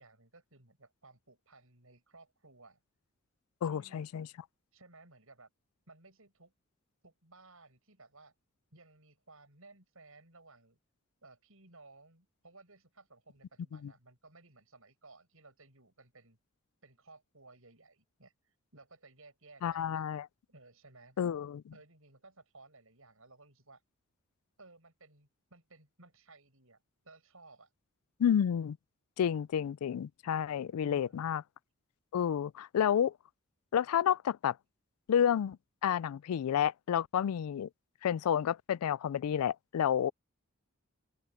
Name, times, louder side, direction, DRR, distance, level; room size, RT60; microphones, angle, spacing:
voice 1, 0.0-2.8 3.6-4.1 4.7-5.5 5.9-6.5 7.0-8.3 8.7-10.8 11.2-16.4 16.8-18.3 18.7-20.0 20.5-21.3 21.7-23.8 24.6-27.7 30.8-31.3, right 3 dB, 70° right, 7.0 m, -58 dB
voice 2, 3.6-4.3 13.8-13.9 19.6-20.3 21.2-21.6 28.2-28.8 29.2-31.4 32.1-33.1 33.7-34.6 35.1-35.6 35.8-37.7 38.0-40.1, left 9 dB, 80° left, 0.3 m, -30 dB
open air
head